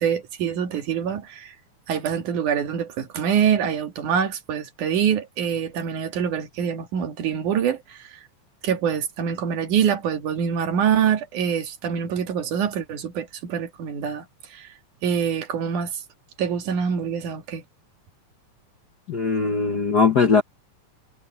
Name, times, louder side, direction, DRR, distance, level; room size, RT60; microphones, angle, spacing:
voice 1, 0.0-1.5 1.9-8.2 8.6-14.7 15.0-16.0 16.4-17.6, right 8 dB, 80° right, 3.4 m, -25 dB
voice 2, 19.1-20.4, left 5 dB, 60° left, 1.1 m, -20 dB
omnidirectional pair, 3.5 m